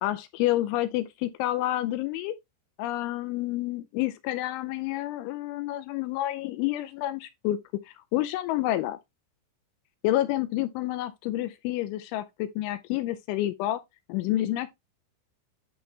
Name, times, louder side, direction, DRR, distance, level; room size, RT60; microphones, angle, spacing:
voice 1, 0.0-2.3 2.8-7.6 7.9-9.0 10.0-13.8 14.1-14.7, left 15 dB, 85° left, 2.8 m, -29 dB
10.0 x 4.4 x 3.2 m
omnidirectional pair, 5.8 m